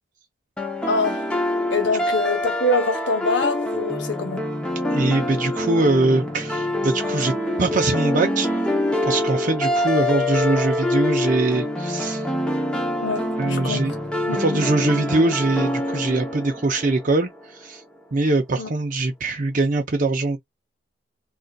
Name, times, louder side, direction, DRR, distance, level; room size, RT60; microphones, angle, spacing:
sound 1, 0.6-17.5, left 1 dB, 5° left, 0.7 m, -25 dB
voice 1, 0.9-1.3 1.7-4.5 13.0-13.9 14.3-14.7 18.6-18.7, left 2 dB, 70° left, 0.8 m, -25 dB
voice 2, 4.9-8.5 9.0-12.2 13.4-13.9 14.4-17.8 18.1-20.4, right 2 dB, 45° right, 0.6 m, -22 dB
3.7 x 2.4 x 2.2 m
head